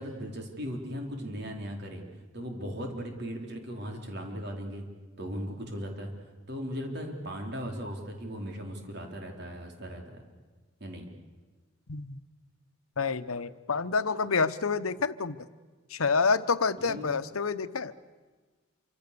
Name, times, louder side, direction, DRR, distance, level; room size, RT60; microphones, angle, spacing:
voice 1, 0.0-2.0 2.3-4.8 5.2-6.1 6.5-10.2 10.8-11.1 16.8-17.1, equal, 50° right, 2 dB, 4.1 m, -37 dB
voice 2, 13.0-15.4 15.9-17.9, left 4 dB, 90° left, 13 dB, 1.0 m, -28 dB
27.5 x 25.5 x 6.9 m, 1.3 s
head